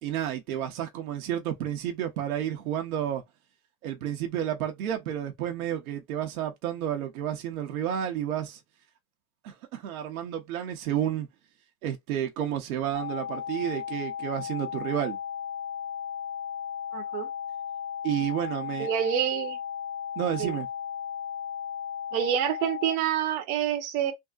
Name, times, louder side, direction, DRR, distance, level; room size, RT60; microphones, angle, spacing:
voice 1, 0.0-3.2 3.8-8.6 9.4-11.3 11.8-15.2 18.0-18.9 20.2-20.7, right 10 dB, 75° right, 1.0 m, -31 dB
sound 1, 12.9-23.0, left 8 dB, 45° left, 0.9 m, -35 dB
voice 2, 16.9-17.3 18.8-19.6 20.4-20.6 22.1-24.1, right 10 dB, 50° right, 1.0 m, -27 dB
3.6 x 2.1 x 2.4 m
supercardioid pair, 150°, 43 cm